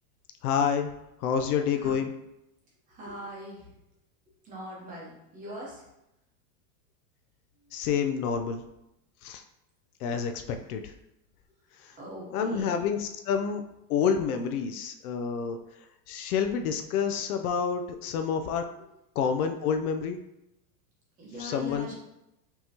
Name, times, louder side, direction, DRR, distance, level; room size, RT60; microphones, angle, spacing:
voice 1, 0.4-0.9 1.2-2.1 7.7-8.6 9.2-9.4 10.0-10.9 11.8-11.9 12.3-13.6 13.9-15.6 16.1-18.6 19.2-20.2 21.4-21.9, left 7 dB, 65° left, 6 dB, 0.5 m, -28 dB
voice 2, 1.4-2.0 2.9-3.8 4.4-5.9 7.6-7.7 10.5-10.6 12.0-12.8 18.0-18.2 18.8-18.9 21.2-21.9, equal, 15° right, -5 dB, 0.9 m, -42 dB
5.4 x 2.9 x 2.8 m, 0.87 s
supercardioid pair, 170°, 48 cm